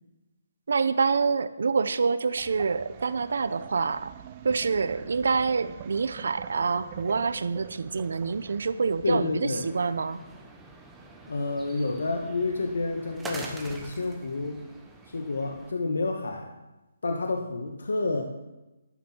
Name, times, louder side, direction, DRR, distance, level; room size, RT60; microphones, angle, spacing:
voice 1, 0.7-4.1 4.4-10.2, right 5 dB, 65° right, 14 dB, 0.8 m, -26 dB
sound 1, 2.4-9.4, right 10 dB, 25° right, 0.6 m, -45 dB
voice 2, 9.0-9.7 11.3-14.6 15.1-16.6 17.0-18.2, left 3 dB, 80° left, 3 dB, 1.7 m, -29 dB
sound 2, 9.5-15.7, right 3 dB, 5° right, 1.1 m, -45 dB
12.0 x 12.0 x 4.6 m, 1.0 s
hypercardioid pair, 165°, 0 cm